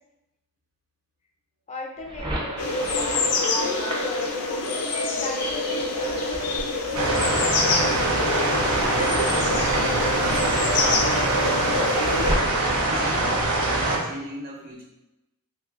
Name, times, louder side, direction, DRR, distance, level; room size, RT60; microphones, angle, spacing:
voice 1, 1.7-4.5 5.2-6.3, left 2 dB, 30° left, 0 dB, 0.4 m, -38 dB
sound 1, 2.0-13.4, right 1 dB, 20° right, 0.6 m, -35 dB
sound 2, 2.6-12.3, left 3 dB, 80° left, 0.5 m, -26 dB
sound 3, 6.9-14.0, right 2 dB, 85° right, 0.6 m, -23 dB
voice 2, 10.2-11.2 12.7-13.3 13.8-14.8, right 2 dB, 40° right, -4 dB, 1.0 m, -36 dB
3.8 x 2.9 x 2.4 m, 0.93 s
head